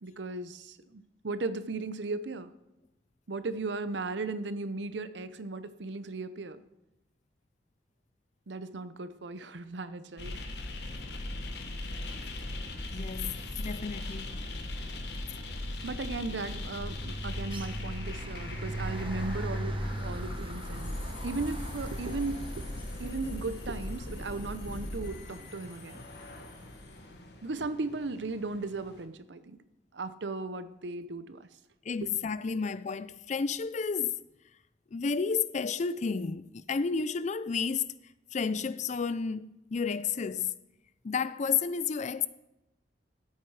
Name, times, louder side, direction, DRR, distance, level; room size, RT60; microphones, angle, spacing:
voice 1, 0.0-2.5 3.3-6.6 8.5-10.4 15.8-22.5 23.0-26.0 27.4-29.6 29.9-31.5, right 3 dB, 85° right, 0.7 m, -36 dB
sound 1, 10.2-29.1, left 1 dB, 65° left, 1.3 m, -39 dB
voice 2, 12.9-14.4 31.8-34.2 34.9-37.9 38.3-40.5 41.0-42.3, left 5 dB, 40° left, 0.4 m, -31 dB
sound 2, 12.9-13.2 13.5-26.6, right 1 dB, 30° right, 0.9 m, -42 dB
13.5 x 8.3 x 4.7 m
head